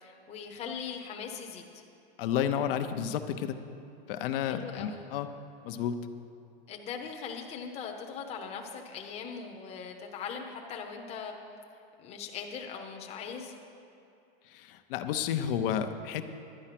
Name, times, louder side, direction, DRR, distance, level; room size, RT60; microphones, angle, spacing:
voice 1, 0.0-1.8 4.4-5.0 6.7-11.3 12.0-13.6, left 6 dB, 20° left, 1 dB, 0.8 m, -40 dB
voice 2, 2.2-3.6 4.1-5.3 5.6-6.0 14.5-16.2, left 9 dB, 65° left, 8 dB, 0.8 m, -31 dB
11.5 x 9.7 x 5.9 m, 2.8 s
supercardioid pair, 160°, 30 cm